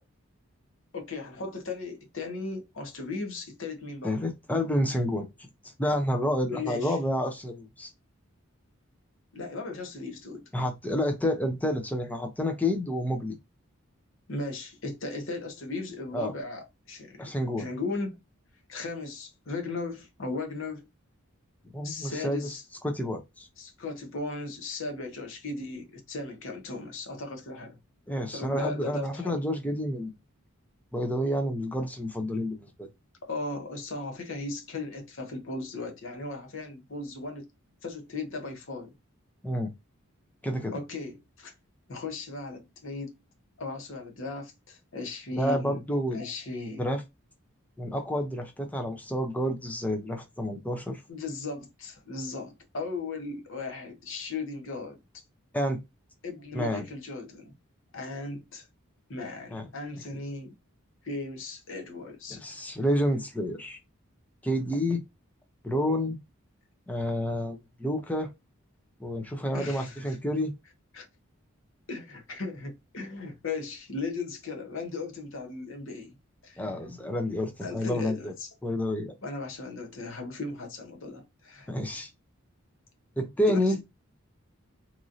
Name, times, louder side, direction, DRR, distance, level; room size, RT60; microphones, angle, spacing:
voice 1, 0.9-4.2 6.5-7.0 9.3-10.4 14.3-17.3 17.6-18.2 18.7-20.9 21.8-22.6 23.6-27.8 28.3-29.4 33.2-37.5 37.8-38.9 40.7-41.5 41.9-43.1 43.6-45.8 46.1-46.9 51.1-55.0 56.2-57.5 57.9-58.7 59.1-60.5 61.0-62.4 64.7-64.9 69.5-70.2 70.9-71.0 71.9-76.1 76.4-76.6 77.6-78.5 79.2-81.7 83.5-83.8, left 3 dB, 65° left, 0.9 m, -37 dB
voice 2, 4.0-5.3 5.6-7.9 10.5-13.4 16.1-16.3 17.2-17.7 21.7-22.6 22.8-23.5 28.1-30.1 30.9-32.9 39.4-39.7 40.4-40.8 45.3-46.2 46.8-47.0 47.8-51.0 55.5-55.8 56.5-56.8 59.5-59.6 62.3-63.8 64.4-65.0 65.6-66.2 66.9-68.3 69.0-70.5 76.6-78.3 78.6-79.1 81.7-82.1 83.2-83.8, equal, 5° left, 0.5 m, -29 dB
3.0 x 2.6 x 2.4 m
head